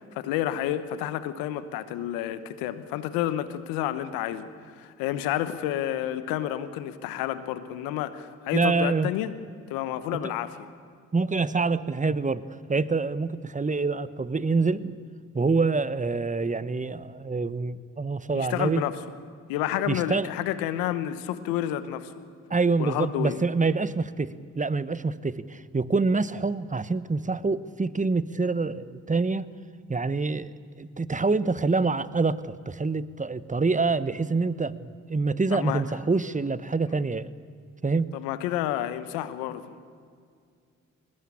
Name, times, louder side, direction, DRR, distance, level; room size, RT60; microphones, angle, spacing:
voice 1, 0.1-4.5 4.8-9.3 9.7-10.6 18.3-19.0 19.5-22.1 22.8-23.4 35.5-35.8 38.1-39.6, left 12 dB, 90° left, 12 dB, 1.1 m, -30 dB
voice 2, 8.5-9.1 10.1-10.3 11.1-12.4 12.7-15.0 15.3-18.8 19.9-20.3 22.5-29.5 29.9-30.5 30.8-37.3 37.8-38.1, right 4 dB, 20° right, 16 dB, 1.1 m, -26 dB
21.0 x 19.0 x 8.6 m, 2.2 s
hypercardioid pair, 45°, 34 cm